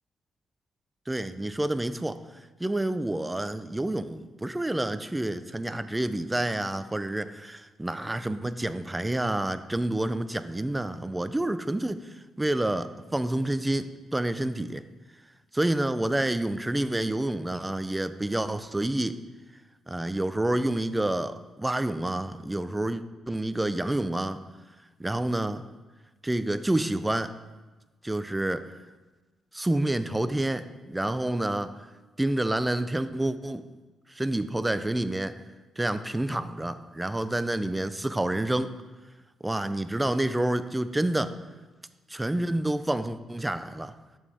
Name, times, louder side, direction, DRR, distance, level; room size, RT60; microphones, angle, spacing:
voice 1, 1.1-2.2 2.6-12.1 12.4-14.8 15.5-19.2 19.9-24.4 25.0-25.6 26.2-27.3 28.0-28.7 29.5-31.7 32.2-33.6 34.1-35.4 35.8-38.7 39.4-41.4 42.1-43.9, right 1 dB, 15° right, 12 dB, 0.5 m, -28 dB
11.0 x 7.2 x 3.5 m, 1.2 s
cardioid pair, 70°, 0 cm